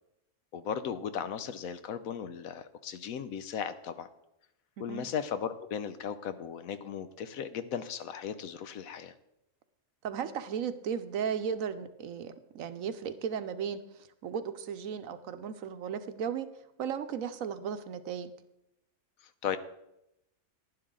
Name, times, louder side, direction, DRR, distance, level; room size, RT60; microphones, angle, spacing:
voice 1, 0.5-4.1 4.8-9.1 19.4-19.6, left 8 dB, 70° left, 12 dB, 1.1 m, -36 dB
voice 2, 10.0-13.8 14.2-16.5 16.8-18.3, right 7 dB, 70° right, 11 dB, 1.0 m, -35 dB
11.0 x 10.5 x 3.7 m, 0.86 s
omnidirectional pair, 1.6 m